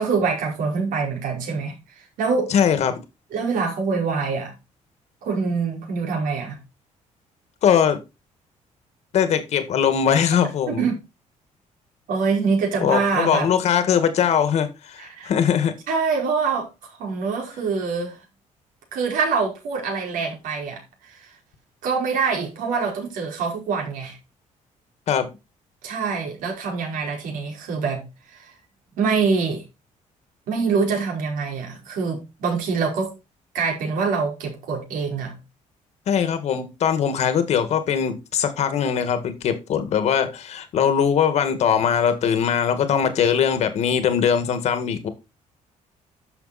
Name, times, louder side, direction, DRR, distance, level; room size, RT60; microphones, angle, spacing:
voice 1, 0.0-2.5 3.3-4.5 5.2-6.6 10.7-11.0 12.1-13.5 15.0-15.3 15.9-18.2 18.9-21.3 21.8-24.2 25.8-28.5 29.0-29.7 30.5-33.1 33.5-35.4, right 5 dB, 85° right, 5.0 m, -25 dB
voice 2, 2.5-3.0 7.6-8.0 9.1-10.9 12.8-15.7 25.1-25.3 36.1-45.1, left 8 dB, 55° left, 1.8 m, -21 dB
11.5 x 6.7 x 4.2 m
cardioid pair, 170°, 14 cm